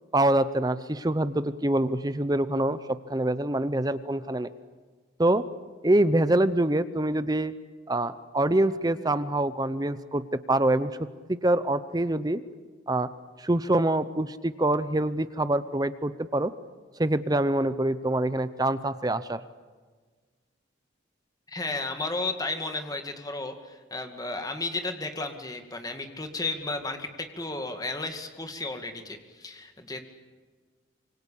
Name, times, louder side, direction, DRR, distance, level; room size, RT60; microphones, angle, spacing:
voice 1, 0.1-4.5 5.2-5.4 5.8-7.5 7.9-10.9 11.3-12.4 12.9-13.1 13.4-16.5 17.0-19.4, right 1 dB, 20° right, 13 dB, 0.7 m, -25 dB
voice 2, 21.5-30.0, left 2 dB, 20° left, 6 dB, 2.1 m, -33 dB
25.5 x 24.5 x 8.6 m, 1.4 s
head